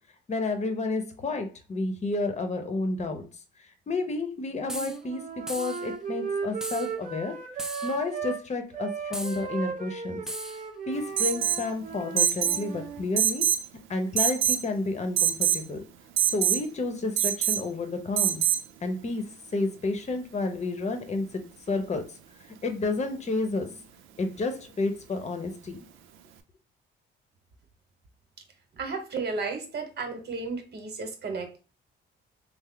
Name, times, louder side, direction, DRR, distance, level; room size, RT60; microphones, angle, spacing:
voice 1, 0.3-3.3 3.6-10.2 10.9-13.5 13.9-15.9 16.3-18.4 18.8-19.2 19.5-22.2 22.6-23.8 24.2-25.8, left 3 dB, 35° left, 0.8 m, -31 dB
Wind instrument woodwind instrument, 4.5-8.4 8.7-13.0, right 6 dB, 40° right, 0.9 m, -36 dB
sound 1, 4.7-5.0 5.5-5.8 6.6-6.9 7.6-8.0 9.1-9.4 10.3-10.6, right 1 dB, 5° right, 0.4 m, -37 dB
Alarm, 11.2-11.7 12.2-12.6 13.2-13.7 14.2-14.6 15.2-15.6 16.2-16.6 17.2-17.6 18.2-18.6, right 11 dB, 85° right, 0.5 m, -24 dB
voice 2, 28.7-31.6, right 4 dB, 55° right, 1.2 m, -33 dB
3.3 x 2.0 x 3.7 m
cardioid pair, 90°, 20 cm